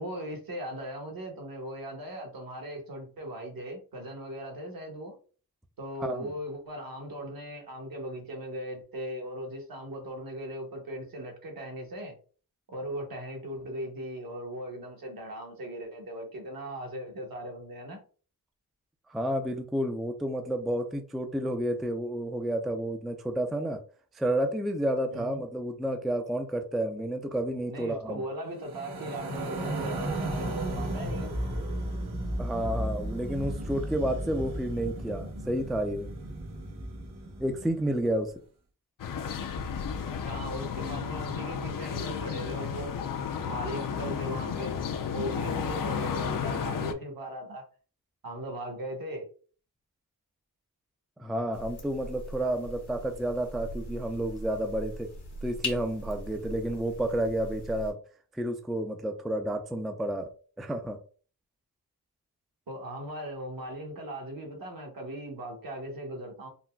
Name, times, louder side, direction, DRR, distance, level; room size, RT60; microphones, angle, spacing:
voice 1, 0.0-5.1 5.8-12.2 12.7-18.0 25.1-25.4 27.7-31.3 40.2-43.0 43.5-47.7 48.2-49.3 62.7-66.5, right 1 dB, 65° right, 1.1 m, -38 dB
voice 2, 6.0-6.3 19.1-23.8 24.1-28.2 32.4-36.1 37.4-38.3 51.2-55.1 55.4-58.0 58.3-60.3 60.6-61.0, right 1 dB, ahead, 0.3 m, -30 dB
sound 1, 28.6-37.9, right 1 dB, 85° right, 1.0 m, -34 dB
sound 2, 39.0-46.9, left 7 dB, 60° left, 0.5 m, -33 dB
sound 3, 51.5-57.9, left 1 dB, 85° left, 1.2 m, -40 dB
3.9 x 2.2 x 2.2 m
cardioid pair, 70°, 38 cm